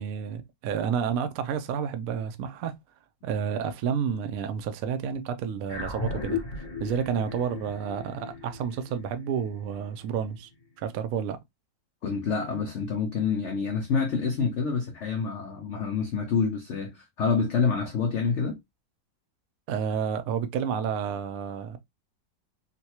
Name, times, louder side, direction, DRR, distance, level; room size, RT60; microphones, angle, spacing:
voice 1, 0.0-2.7 3.2-6.4 6.8-10.5 10.8-11.4 19.7-21.8, right 7 dB, 70° right, 0.8 m, -30 dB
sound 1, 5.7-10.3, left 4 dB, 30° left, 0.4 m, -36 dB
voice 2, 12.0-18.6, left 5 dB, 80° left, 0.6 m, -27 dB
3.9 x 2.2 x 2.8 m
omnidirectional pair, 2.0 m